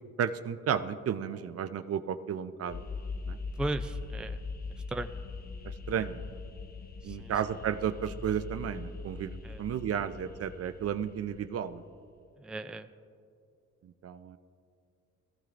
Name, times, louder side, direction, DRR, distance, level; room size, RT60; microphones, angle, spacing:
voice 1, 0.2-2.9 3.3-3.4 5.6-6.2 7.0-11.8 13.8-14.4, right 8 dB, 50° right, 11 dB, 0.6 m, -33 dB
sound 1, 2.7-11.9, left 4 dB, 30° left, 0.8 m, -41 dB
voice 2, 3.6-5.1 7.0-7.3 9.4-9.6 12.4-12.9, right 2 dB, 5° right, 8 dB, 0.4 m, -37 dB
20.5 x 15.0 x 2.6 m, 2.4 s
cardioid pair, 90°, 30 cm